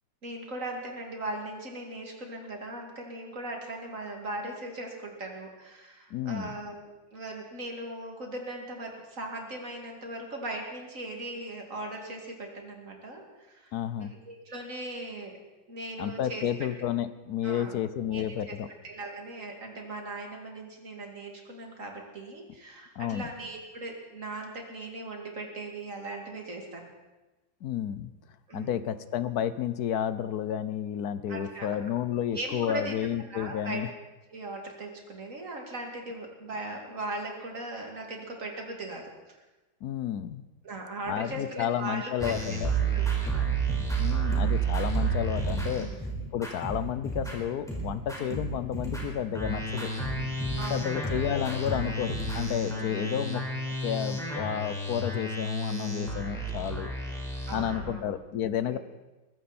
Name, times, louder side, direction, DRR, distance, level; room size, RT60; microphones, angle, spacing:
voice 1, 0.2-15.4 15.7-16.7 17.4-17.8 18.1-18.5 18.8-26.9 28.5-28.9 31.3-31.8 32.3-33.0 33.3-33.8 34.3-39.4 40.6-42.6 42.9-43.5 45.7-46.0 48.2-48.4 50.6-51.1 52.6-53.2 57.5-58.1 58.6-58.8, right 2 dB, 40° right, 1 dB, 2.9 m, -39 dB
voice 2, 6.1-6.6 13.7-14.1 16.0-18.7 23.0-23.3 27.6-28.1 28.5-33.9 39.8-40.4 41.1-43.0 44.0-45.9 46.3-49.9 50.7-53.4 53.8-56.9 57.5-58.8, left 9 dB, 65° left, 13 dB, 1.1 m, -31 dB
sound 1, 42.2-47.4 47.7-57.8, right 3 dB, ahead, 4.3 m, -31 dB
22.0 x 15.0 x 4.3 m, 1.1 s
omnidirectional pair, 2.1 m